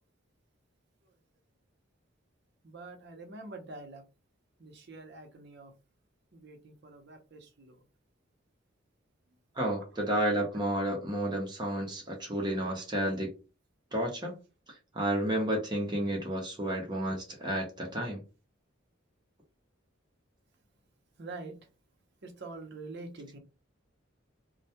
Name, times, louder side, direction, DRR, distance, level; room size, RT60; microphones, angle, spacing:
voice 1, 2.6-4.0 4.6-5.7 6.3-7.8 21.2-21.5 22.2-23.4, right 3 dB, 60° right, 0.7 m, -45 dB
voice 2, 9.6-13.3 13.9-14.4 14.9-18.2, right 1 dB, 20° right, 0.7 m, -31 dB
2.2 x 2.1 x 2.7 m
head